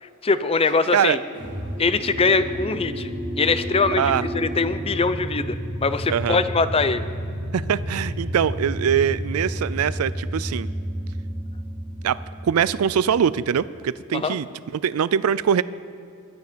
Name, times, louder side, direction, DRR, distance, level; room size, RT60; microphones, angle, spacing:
voice 1, 0.0-1.2 1.8-3.1 3.4-7.0 14.1-14.4, left 4 dB, 25° left, 12 dB, 0.6 m, -22 dB
sound 1, 1.3-13.6, equal, 40° right, 2.7 m, -31 dB
voice 2, 3.9-4.2 6.1-6.4 7.5-10.7 12.0-14.5 14.7-15.6, right 8 dB, 85° right, 18 dB, 0.4 m, -22 dB
23.0 x 9.4 x 5.1 m, 2.5 s
head